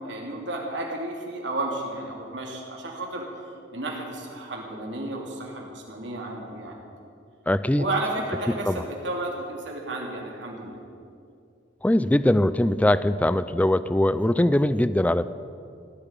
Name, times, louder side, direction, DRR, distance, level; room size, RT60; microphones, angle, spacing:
voice 1, 0.0-3.3 3.7-6.8 7.7-10.8, right 2 dB, 70° right, 0 dB, 3.0 m, -32 dB
voice 2, 7.5-7.8 8.6-8.8 11.8-15.3, left 1 dB, 10° left, 14 dB, 0.3 m, -21 dB
17.0 x 7.0 x 10.0 m, 2.4 s
head